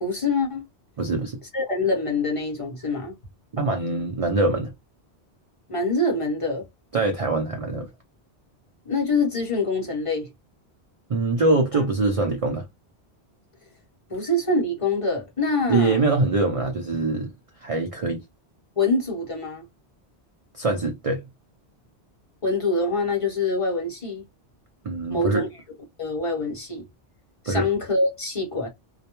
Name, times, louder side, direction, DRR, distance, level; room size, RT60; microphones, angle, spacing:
voice 1, 0.0-0.6 1.5-3.1 5.7-6.6 8.8-10.3 14.1-16.0 18.8-19.6 22.4-24.2 25.1-25.5 26.0-26.8 27.4-28.7, left 2 dB, 35° left, 0.8 m, -25 dB
voice 2, 1.0-1.4 3.5-4.7 6.9-7.9 11.1-12.7 15.7-17.3 17.6-18.2 20.5-21.2 24.8-25.5 27.5-27.7, right 3 dB, 50° right, 0.4 m, -23 dB
2.3 x 2.1 x 2.9 m
omnidirectional pair, 1.1 m